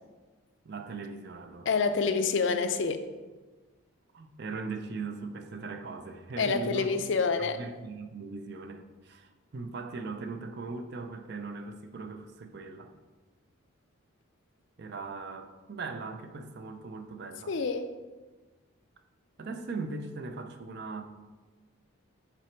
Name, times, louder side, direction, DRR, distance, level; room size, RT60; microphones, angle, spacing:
voice 1, 0.6-1.7 4.1-7.0 7.6-12.9 14.8-17.5 19.4-21.0, right 3 dB, 50° right, 7 dB, 0.5 m, -39 dB
voice 2, 1.7-3.0 6.4-7.6 17.5-17.9, left 4 dB, 55° left, 9 dB, 0.4 m, -27 dB
6.1 x 4.0 x 4.5 m, 1.3 s
head